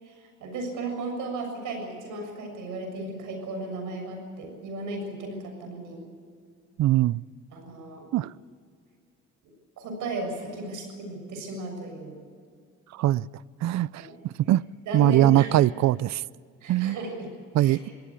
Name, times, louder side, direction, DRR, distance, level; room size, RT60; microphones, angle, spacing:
voice 1, 0.0-6.1 7.5-8.0 9.4-12.2 13.9-14.1 14.9-15.5 16.6-17.3 17.6-17.9, right 2 dB, 85° right, 6.9 m, -35 dB
voice 2, 6.8-7.2 8.1-8.3 12.9-13.3 13.6-14.1 14.5-14.6 14.9-16.2 16.7-17.0 17.5-17.9, right 14 dB, 65° right, 0.5 m, -21 dB
23.5 x 16.5 x 8.5 m
cardioid pair, 90°, 30 cm